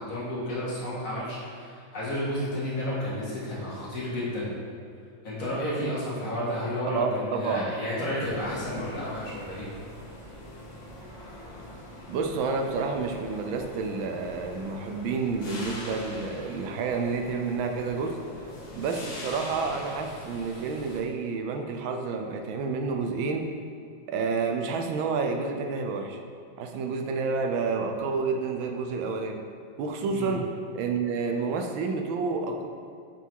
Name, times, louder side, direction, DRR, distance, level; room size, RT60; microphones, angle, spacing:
voice 1, 0.0-4.5 5.2-9.7 30.1-30.4, left 1 dB, 45° left, -8 dB, 2.1 m, -31 dB
voice 2, 6.8-7.7 12.1-18.2 18.7-23.5 24.1-26.2 26.6-29.4 29.8-30.5 30.7-32.7, right 4 dB, 90° right, 4 dB, 1.4 m, -29 dB
sound 1, 8.2-21.0, left 1 dB, 80° left, 1.9 m, -43 dB
7.0 x 3.9 x 4.6 m, 2.4 s
omnidirectional pair, 2.1 m